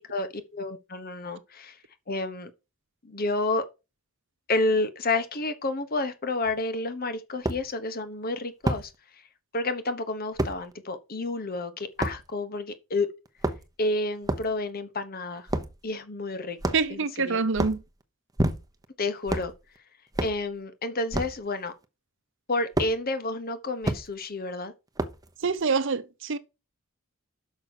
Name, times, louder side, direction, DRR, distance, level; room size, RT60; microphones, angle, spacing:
voice 1, 0.1-1.8 2.1-2.5 3.0-3.6 4.5-8.9 9.5-13.1 13.8-15.5 15.8-16.6 16.9-17.0 17.3-17.4 19.0-19.5 20.2-21.7 22.5-24.7, left 2 dB, 45° left, 1.1 m, -30 dB
sound 1, 6.4-6.5 7.4-7.6 8.7-8.9 10.4-10.6 12.0-12.2 13.3-13.8 14.2-14.5 15.5-15.7 16.6-17.0 17.5-17.8 18.4-18.8 19.3-19.5 20.1-20.4 21.1-21.4 22.8-22.9 23.8-24.0 25.0-25.3, right 1 dB, 15° right, 0.8 m, -28 dB
voice 2, 16.7-17.8 25.4-26.4, right 4 dB, 60° right, 0.7 m, -26 dB
6.3 x 5.7 x 6.4 m
head